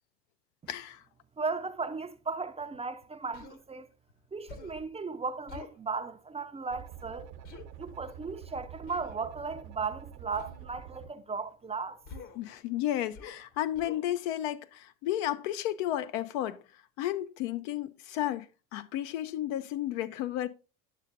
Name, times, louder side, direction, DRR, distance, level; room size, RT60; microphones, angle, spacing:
voice 1, 0.7-1.0 12.4-16.6 17.0-20.5, left 12 dB, 70° left, 0.6 m, -33 dB
voice 2, 1.4-3.9 4.3-7.3 7.8-12.0, right 4 dB, 15° right, 0.5 m, -36 dB
Human voice, 3.3-3.6 4.5-4.9 5.5-5.8 7.4-7.7 8.9-9.2 10.4-10.7 12.0-12.4 13.1-13.4 13.7-14.0, left 5 dB, 50° left, 1.1 m, -47 dB
sound 1, 6.7-11.1, right 9 dB, 65° right, 0.9 m, -47 dB
9.0 x 6.4 x 2.6 m
hypercardioid pair, 70°, 39 cm